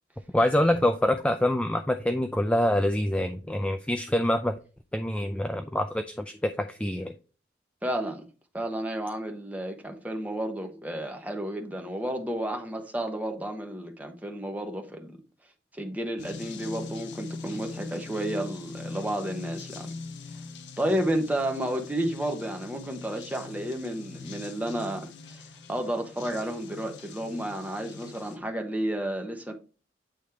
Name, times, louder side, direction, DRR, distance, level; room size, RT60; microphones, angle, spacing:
voice 1, 0.3-4.6 4.9-7.1, left 1 dB, 5° left, 0.3 m, -25 dB
voice 2, 7.8-8.2 8.5-15.2 15.7-19.9 20.8-25.4 25.7-29.5, right 1 dB, 10° right, 1.0 m, -31 dB
sound 1, 16.2-28.4, left 4 dB, 75° left, 0.8 m, -42 dB
8.6 x 3.1 x 4.6 m
head